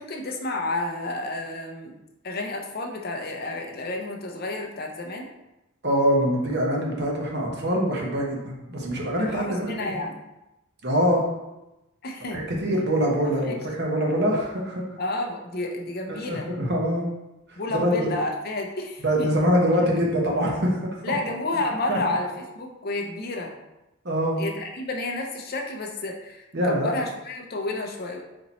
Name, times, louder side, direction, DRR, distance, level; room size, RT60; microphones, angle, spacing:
voice 1, 0.0-1.9 2.2-5.3 9.2-10.2 12.0-12.4 13.2-13.6 15.0-16.5 17.6-19.3 21.0-23.5 24.4-28.2, left 2 dB, 45° left, 1 dB, 0.6 m, -30 dB
voice 2, 5.8-10.0 10.8-11.3 12.3-14.8 16.1-17.1 17.5-18.1 19.0-21.1 21.9-22.0 24.0-24.4 26.5-26.9, equal, 50° right, -1 dB, 1.0 m, -24 dB
4.3 x 2.9 x 4.1 m, 0.96 s
head